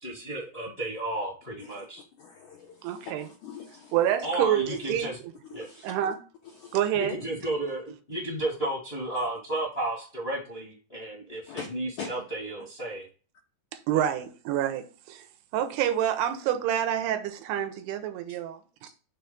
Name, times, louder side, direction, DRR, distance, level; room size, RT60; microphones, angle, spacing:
voice 1, 0.0-2.0 4.2-5.2 5.5-5.7 6.9-13.0, right 1 dB, 45° left, 0.8 m, -33 dB
voice 2, 2.2-4.0 5.6-5.9 6.6-6.8 9.1-9.3 11.5-11.7 12.0-12.1, left 6 dB, 85° left, 1.7 m, -42 dB
voice 3, 2.8-3.3 3.9-5.1 5.8-6.2 6.7-7.2 13.9-15.2 15.5-18.9, right 10 dB, 85° right, 2.6 m, -27 dB
6.1 x 3.5 x 5.0 m
omnidirectional pair, 4.7 m